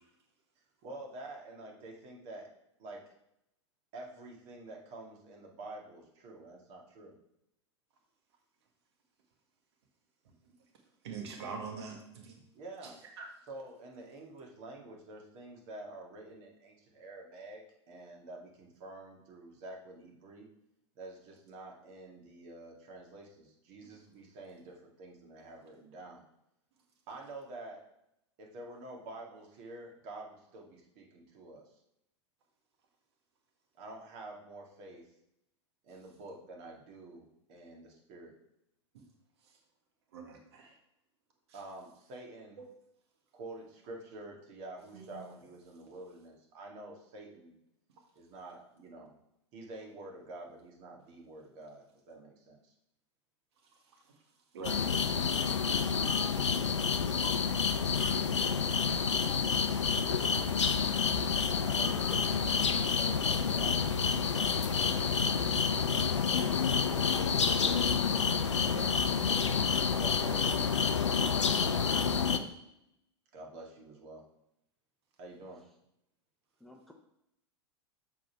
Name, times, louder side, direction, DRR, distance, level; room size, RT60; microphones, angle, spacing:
voice 1, 0.8-2.5 2.8-3.0 3.9-7.1 12.5-13.0 13.5-17.6 17.9-20.5 21.0-26.2 27.1-27.8 28.4-31.6 33.8-35.0 35.8-38.3 41.5-42.6 43.3-47.5 48.2-49.1 49.5-52.7 61.6-65.3 65.7-67.6 69.9-70.5 73.3-74.2 75.2-75.6, right 2 dB, 45° right, 0 dB, 2.1 m, -48 dB
voice 2, 11.0-12.3 13.2-13.3 40.1-40.7 42.6-42.7 44.9-45.2 54.5-54.9 55.3-55.4 57.2-57.5 57.9-58.6 68.6-68.9, right 5 dB, 65° right, 2 dB, 1.7 m, -44 dB
sound 1, 54.6-72.4, left 6 dB, 85° left, 0.6 m, -29 dB
voice 3, 72.0-72.6 76.6-76.9, left 1 dB, ahead, 2 dB, 0.8 m, -51 dB
7.5 x 4.1 x 4.6 m, 0.81 s
figure-of-eight pair, 95°, 15 cm